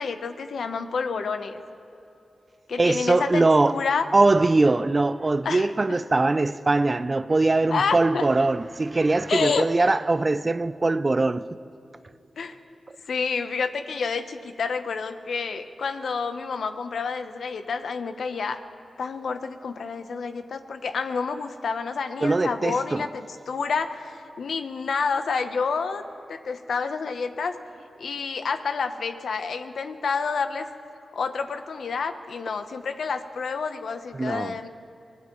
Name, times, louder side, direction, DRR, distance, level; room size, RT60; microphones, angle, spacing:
voice 1, 0.0-1.6 2.7-4.0 5.4-6.0 7.7-8.2 9.3-9.9 12.4-12.6 13.0-18.6 19.0-26.0 26.3-27.6 28.0-30.7 31.1-34.7, left 5 dB, 80° left, 0.9 m, -29 dB
voice 2, 2.8-3.8 4.1-11.5 22.2-23.1 34.1-34.6, right 2 dB, 35° right, 0.4 m, -22 dB
24.5 x 19.0 x 3.1 m
cardioid pair, 65°, 0 cm